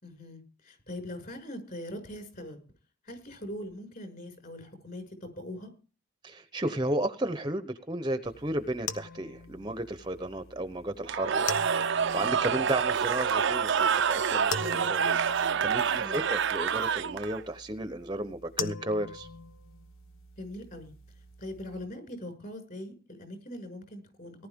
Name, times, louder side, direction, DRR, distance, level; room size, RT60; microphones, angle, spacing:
voice 1, 0.0-2.6 3.0-5.7 16.0-16.3 20.4-20.9 21.4-24.5, left 1 dB, 40° left, 6 dB, 5.9 m, -41 dB
voice 2, 6.2-11.6 11.8-15.0 15.6-19.3, right 1 dB, 20° right, 10 dB, 0.8 m, -33 dB
sound 1, 8.2-21.8, left 4 dB, 75° left, 1.1 m, -42 dB
Cheering / Crowd, 11.1-17.4, right 7 dB, 60° right, 0.5 m, -27 dB
18.5 x 11.0 x 3.6 m, 0.35 s
head